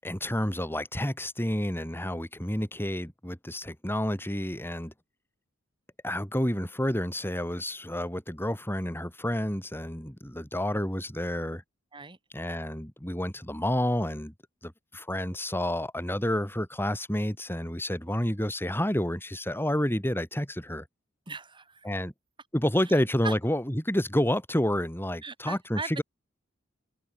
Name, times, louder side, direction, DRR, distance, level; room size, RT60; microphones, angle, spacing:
voice 1, 0.0-4.9 6.0-11.6 12.3-14.3 14.6-20.8 21.8-22.1 22.5-26.0, left 1 dB, 10° left, 7.1 m, -29 dB
voice 2, 21.3-21.9 23.2-23.3 25.2-26.0, right 4 dB, 25° right, 3.5 m, -38 dB
head